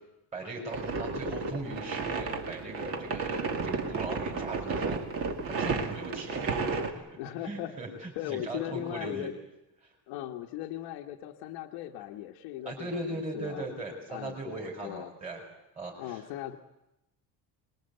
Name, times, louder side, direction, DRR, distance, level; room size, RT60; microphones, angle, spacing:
voice 1, 0.3-6.8 7.1-7.2 7.4-9.3 9.8-9.9 12.6-15.4 15.8-16.2, right 2 dB, 20° right, 0 dB, 4.3 m, -39 dB
sound 1, 0.7-6.9, right 4 dB, 35° right, 2.2 m, -33 dB
voice 2, 7.2-7.7 8.1-9.3 10.1-13.7 14.1-15.1 16.0-16.6, left 13 dB, 85° left, 2 dB, 1.4 m, -38 dB
24.5 x 20.5 x 8.0 m, 0.93 s
cardioid pair, 165°, 37 cm